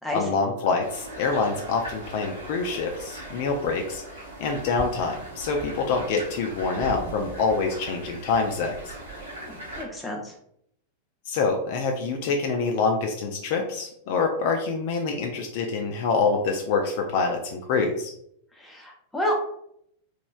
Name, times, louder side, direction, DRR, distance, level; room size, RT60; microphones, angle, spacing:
voice 1, 0.1-8.9 11.3-18.1, left 4 dB, 50° left, 3 dB, 0.3 m, -26 dB
sound 1, 0.8-9.8, right 1 dB, 65° right, 0.8 m, -39 dB
voice 2, 9.4-10.3 18.5-19.4, equal, 5° left, -1 dB, 0.7 m, -30 dB
3.0 x 2.2 x 2.4 m, 0.72 s
figure-of-eight pair, 90°, 0 cm